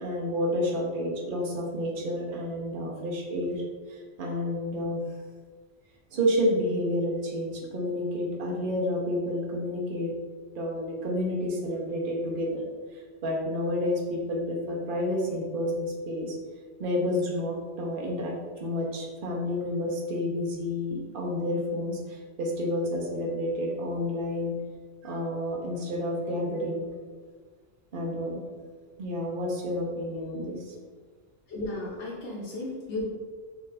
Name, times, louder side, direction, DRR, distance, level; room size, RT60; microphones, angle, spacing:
voice 1, 0.0-3.6 3.9-5.0 6.1-10.1 10.5-12.6 12.9-16.4 16.8-24.5 25.0-26.9 27.9-28.4 29.0-30.7, left 1 dB, 55° right, -1 dB, 1.0 m, -30 dB
voice 2, 31.5-33.1, left 2 dB, 85° left, -5 dB, 1.1 m, -34 dB
4.7 x 2.5 x 4.0 m, 1.5 s
omnidirectional pair, 1.1 m